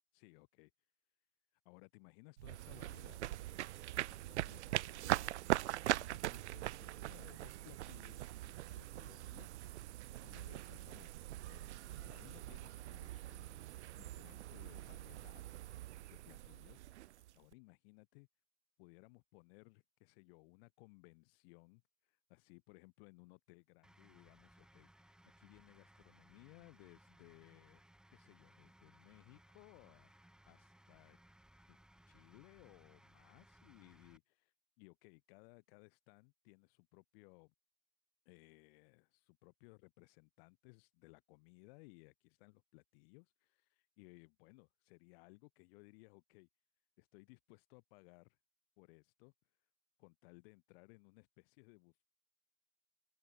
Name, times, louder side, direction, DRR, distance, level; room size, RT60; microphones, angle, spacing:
voice 1, 0.1-0.7 1.6-3.4 4.0-9.8 10.2-11.1 11.5-11.7 12.0-15.5 16.1-18.3 18.8-27.8 28.1-31.2 31.7-31.8 32.1-37.5 38.3-46.5 47.0-48.4 48.8-49.3 50.0-52.0, left 29 dB, 50° left, 4.3 m, -62 dB
sound 1, 2.4-17.5, right 14 dB, 65° right, 0.8 m, -42 dB
sound 2, 2.8-12.4, right 36 dB, 45° right, 2.4 m, -66 dB
sound 3, 23.8-34.2, right 1 dB, ahead, 3.4 m, -65 dB
open air
figure-of-eight pair, 95°, 38 cm